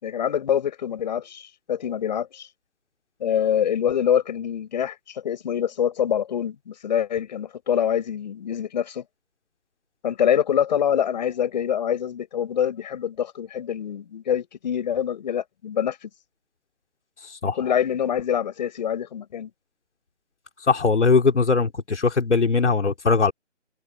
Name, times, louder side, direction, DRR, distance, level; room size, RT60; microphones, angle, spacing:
voice 1, 0.0-2.5 3.2-5.0 5.2-9.0 10.0-16.1 17.6-19.5, left 9 dB, 35° left, 7.0 m, -25 dB
voice 2, 20.7-23.3, left 4 dB, 70° left, 4.1 m, -20 dB
figure-of-eight pair, 160°, 37 cm